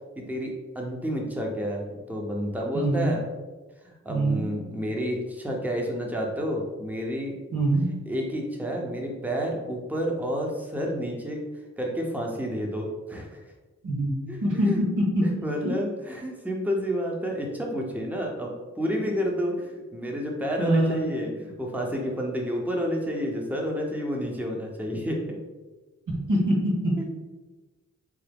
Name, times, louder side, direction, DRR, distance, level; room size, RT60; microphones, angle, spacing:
voice 1, 0.2-3.2 3.8-7.4 7.8-11.4 11.8-13.3 14.3-14.4 14.6-25.4, equal, 5° right, 0 dB, 0.8 m, -30 dB
voice 2, 2.7-3.1 4.1-4.4 7.5-7.9 13.8-14.1 14.4-15.3 15.6-15.7 20.6-21.1 26.3-27.0, right 1 dB, 85° right, -3 dB, 1.1 m, -24 dB
4.8 x 2.0 x 3.4 m, 1.2 s
cardioid pair, 45°, 30 cm